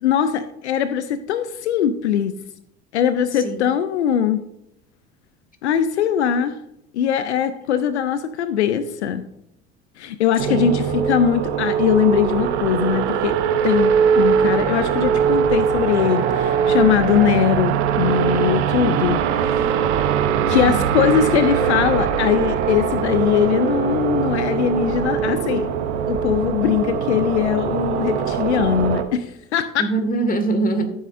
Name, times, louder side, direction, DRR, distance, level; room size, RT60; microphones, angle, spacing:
voice 1, 0.0-2.4 2.9-4.4 5.6-6.5 6.9-9.2 10.0-13.4 13.6-19.2 20.5-25.7 26.1-29.8, left 9 dB, 85° left, 12 dB, 0.6 m, -21 dB
sound 1, 10.4-29.0, right 8 dB, 75° right, 1.0 m, -21 dB
voice 2, 10.5-10.8 20.5-20.9 29.8-30.9, right 2 dB, 25° left, 7 dB, 1.9 m, -23 dB
14.0 x 7.8 x 2.6 m, 0.77 s
hypercardioid pair, 65°, 33 cm